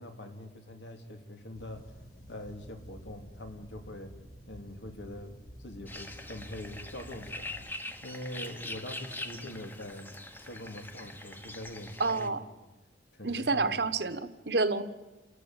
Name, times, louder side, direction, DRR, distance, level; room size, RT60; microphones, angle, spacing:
voice 1, 0.0-1.9 2.3-4.1 4.5-12.7 13.1-13.7, left 1 dB, 85° left, 5 dB, 3.2 m, -44 dB
sound 1, 1.5-7.7, equal, 50° left, 5.0 m, -50 dB
sound 2, 5.9-12.3, left 1 dB, 10° left, 1.1 m, -43 dB
voice 2, 12.0-12.4 13.2-14.8, right 3 dB, 65° right, 12 dB, 1.2 m, -29 dB
28.5 x 13.5 x 9.0 m, 1.1 s
head